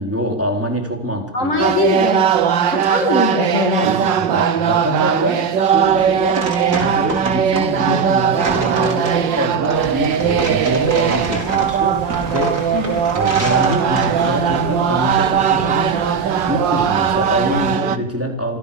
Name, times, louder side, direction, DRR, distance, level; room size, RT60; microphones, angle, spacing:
voice 1, 0.0-1.8 4.2-12.8 13.1-18.6, equal, 5° right, 2 dB, 3.9 m, -25 dB
voice 2, 1.3-2.3 2.7-4.1 12.7-13.0, left 3 dB, 45° left, 4 dB, 2.6 m, -21 dB
sound 1, 1.6-18.0, right 8 dB, 85° right, 1.8 m, -19 dB
sound 2, 5.8-14.4, right 2 dB, 60° right, 5.6 m, -28 dB
sound 3, 9.7-17.8, right 4 dB, 25° right, 1.3 m, -33 dB
27.0 x 16.0 x 7.0 m, 0.79 s
omnidirectional pair, 1.9 m